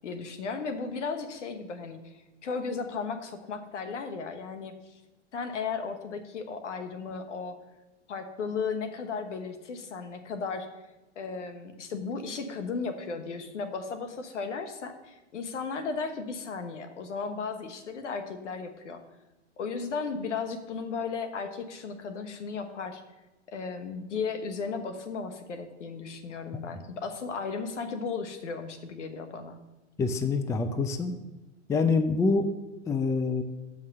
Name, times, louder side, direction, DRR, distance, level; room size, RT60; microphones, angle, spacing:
voice 1, 0.0-2.0 2.4-4.9 5.3-7.6 8.1-10.7 11.2-19.0 19.6-23.0 23.5-29.6, left 5 dB, 80° left, 8 dB, 1.2 m, -35 dB
voice 2, 30.0-31.2 31.7-32.5 32.9-33.4, left 4 dB, 10° left, 9 dB, 0.4 m, -26 dB
7.3 x 5.7 x 6.6 m, 1.1 s
hypercardioid pair, 110°, 36 cm